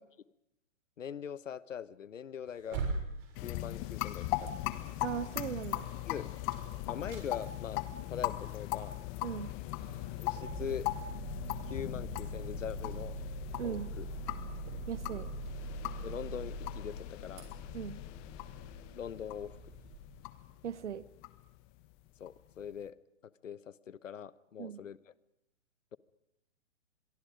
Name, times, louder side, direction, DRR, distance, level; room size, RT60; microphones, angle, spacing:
voice 1, 1.0-2.9 3.4-4.5 6.0-6.3 6.9-7.8 8.1-9.0 10.2-10.9 11.7-13.2 13.6-14.1 16.0-17.5 18.9-19.7 22.2-23.0 23.4-25.0, left 8 dB, 75° left, 18 dB, 1.2 m, -42 dB
sound 1, 2.5-5.0 5.4-5.8 6.1-7.9 8.2-8.3 8.6-8.7 9.3-9.5 9.8-19.9, right 3 dB, 40° right, 6.5 m, -43 dB
sound 2, 3.3-22.6, left 16 dB, 30° left, 1.3 m, -39 dB
voice 2, 5.0-5.9 9.2-9.5 13.6-13.9 14.9-15.3 17.7-18.0 20.6-21.1 24.6-24.8, right 8 dB, 65° right, 16 dB, 1.4 m, -38 dB
25.5 x 23.0 x 5.2 m, 0.81 s
hypercardioid pair, 130°, 38 cm